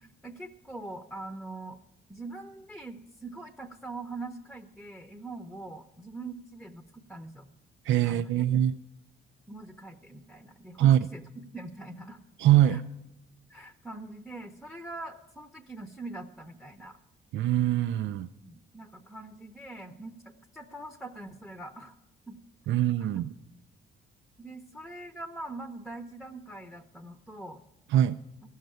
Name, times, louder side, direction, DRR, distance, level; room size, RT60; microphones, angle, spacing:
voice 1, 0.0-1.8 2.1-7.5 8.0-8.5 9.5-11.2 11.5-12.2 12.6-12.8 13.5-17.0 18.4-20.2 20.5-22.0 22.3-22.4 23.1-23.3 24.4-27.6, right 2 dB, ahead, 8 dB, 0.8 m, -43 dB
voice 2, 7.9-8.8 10.8-11.0 12.4-12.8 17.3-18.3 22.7-23.3 27.9-28.2, right 12 dB, 75° right, 9 dB, 0.4 m, -23 dB
13.5 x 6.5 x 9.1 m, 0.92 s
cardioid pair, 90°, 20 cm